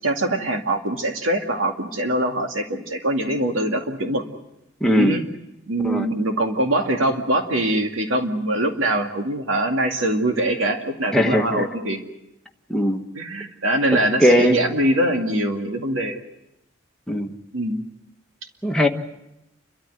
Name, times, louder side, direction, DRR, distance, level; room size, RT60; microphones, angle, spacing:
voice 1, 0.0-4.2 5.0-5.2 5.7-12.0 13.1-16.2 17.5-17.8, right 1 dB, 85° right, 3 dB, 2.3 m, -23 dB
voice 2, 4.8-5.2 5.8-6.1 11.1-11.7 12.7-13.0 13.9-14.6 17.1-17.4 18.6-18.9, equal, 5° left, 1 dB, 1.5 m, -19 dB
29.5 x 13.5 x 9.3 m, 0.89 s
head